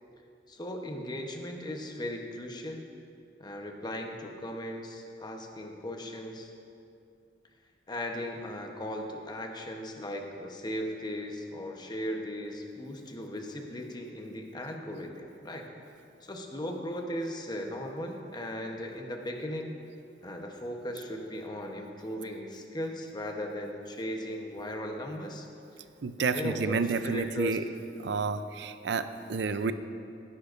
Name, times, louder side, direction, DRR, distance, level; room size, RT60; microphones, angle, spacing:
voice 1, 0.5-2.9 3.4-6.5 7.9-15.6 16.2-19.8 20.2-25.5 26.2-27.6, left 1 dB, 25° left, 2 dB, 0.9 m, -37 dB
voice 2, 26.0-27.6 28.0-29.7, right 4 dB, 65° right, 11 dB, 0.5 m, -30 dB
17.0 x 9.9 x 2.6 m, 2.5 s
head